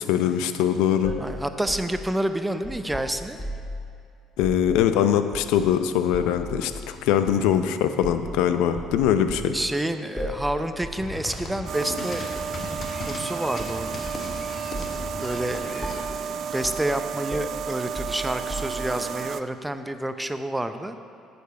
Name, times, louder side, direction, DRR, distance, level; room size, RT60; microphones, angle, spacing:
voice 1, 0.0-1.1 4.4-9.6, left 9 dB, 75° left, 10 dB, 0.5 m, -22 dB
sound 1, 1.0-3.8 4.3-4.7 5.3-5.7 6.1-6.7 7.3-7.4 8.0-8.3 8.7-9.5 10.2-10.5 10.8-11.0 11.3-11.6 12.3-13.0 13.6-14.3 14.7-15.0 15.3-15.5 15.8-16.2 16.6-16.9 17.3-19.0, equal, 10° left, 1.9 m, -36 dB
voice 2, 1.2-3.4 9.5-12.2 13.0-14.0 15.2-21.0, right 1 dB, 10° right, 9 dB, 0.6 m, -29 dB
sound 2, 11.0-16.1, left 2 dB, 40° left, 1.2 m, -37 dB
sound 3, 11.7-19.4, right 7 dB, 60° right, 0.4 m, -32 dB
9.1 x 6.9 x 5.6 m, 2.4 s
hypercardioid pair, 65°, 0 cm